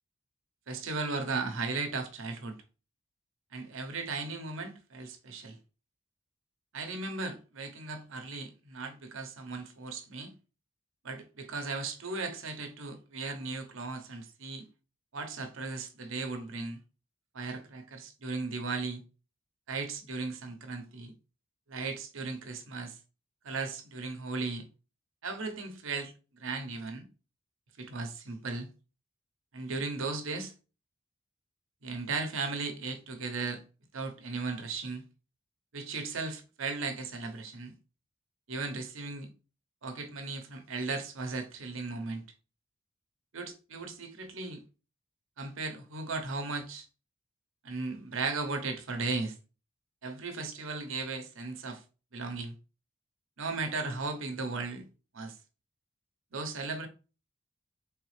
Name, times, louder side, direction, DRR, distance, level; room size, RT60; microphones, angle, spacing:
voice 1, 0.7-2.6 3.5-5.6 6.7-10.3 11.0-14.6 15.1-16.8 17.3-19.0 19.7-21.1 21.7-23.0 23.4-24.6 25.2-26.1 26.4-27.1 27.8-28.7 29.5-30.5 31.8-33.6 33.9-35.0 35.7-37.7 38.5-39.3 39.8-42.2 43.3-44.6 45.4-46.9 47.6-49.3 50.0-51.8 52.1-52.5 53.4-54.8 55.1-55.4 56.3-56.9, right 3 dB, 75° right, 0.8 m, -36 dB
4.0 x 3.4 x 3.2 m
head